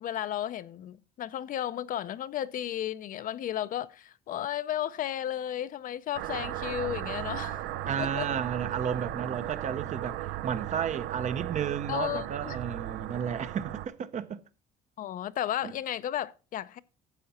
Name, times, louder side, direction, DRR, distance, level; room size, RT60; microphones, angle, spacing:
voice 1, 0.0-7.7 8.0-8.3 11.9-12.6 15.0-16.8, left 11 dB, 55° left, 0.5 m, -34 dB
sound 1, 6.1-13.9, right 14 dB, 85° right, 0.6 m, -36 dB
voice 2, 7.9-14.4 15.6-15.7, right 8 dB, 45° right, 0.7 m, -33 dB
9.9 x 7.0 x 4.2 m
cardioid pair, 110°, 17 cm